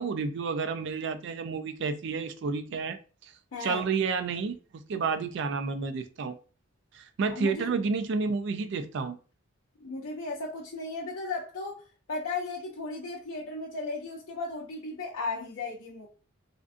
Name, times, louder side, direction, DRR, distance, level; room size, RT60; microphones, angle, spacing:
voice 1, 0.0-3.3 3.6-6.4 6.9-9.2, right 5 dB, 60° right, 0.3 m, -30 dB
voice 2, 3.5-3.8 7.3-7.7 9.8-11.8 12.1-16.1, left 3 dB, 85° left, 0.5 m, -35 dB
2.5 x 2.3 x 2.4 m
head